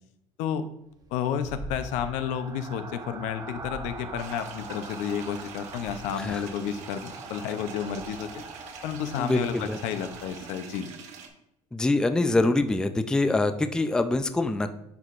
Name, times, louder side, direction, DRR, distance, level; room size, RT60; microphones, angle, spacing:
sound 1, 1.0-11.0, right 3 dB, 30° right, 0.7 m, -43 dB
voice 1, 1.1-8.4 8.8-10.9, left 8 dB, 80° left, 9 dB, 0.6 m, -31 dB
sound 2, 4.2-11.3, right 6 dB, 70° right, 1.0 m, -45 dB
voice 2, 6.1-6.5 9.2-9.8 11.7-14.7, left 2 dB, 5° left, 9 dB, 0.4 m, -25 dB
10.5 x 4.7 x 2.5 m, 0.81 s
cardioid pair, 120°, 12 cm